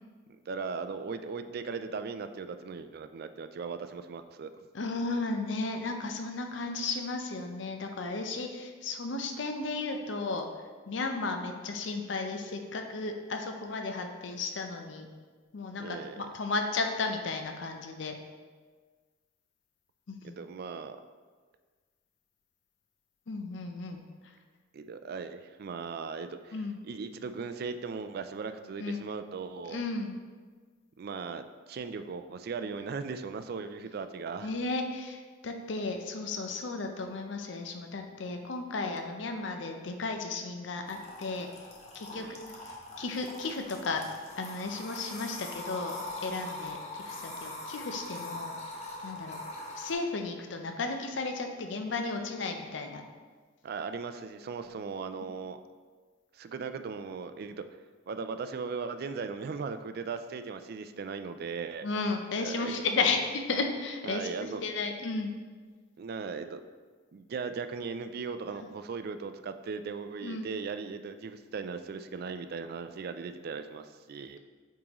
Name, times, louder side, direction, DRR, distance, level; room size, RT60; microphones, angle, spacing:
voice 1, 0.5-4.5 15.8-16.2 20.2-21.0 24.7-29.8 31.0-34.5 42.1-42.4 53.6-55.6 56.3-57.6 58.1-61.9 62.4-62.7 64.0-64.6 66.0-66.6 67.1-74.4, right 5 dB, 50° right, 10 dB, 0.3 m, -38 dB
voice 2, 4.7-10.5 10.9-15.1 15.5-18.1 20.1-20.4 23.3-24.0 26.5-26.8 28.8-29.0 29.7-30.2 34.4-41.5 41.9-44.0 44.4-48.5 49.0-49.4 49.8-53.0 61.8-65.3 70.2-70.5, left 3 dB, 65° left, 4 dB, 0.6 m, -34 dB
sound 1, 40.9-49.9, left 2 dB, 35° left, 0.9 m, -42 dB
8.6 x 3.7 x 3.0 m, 1.5 s
head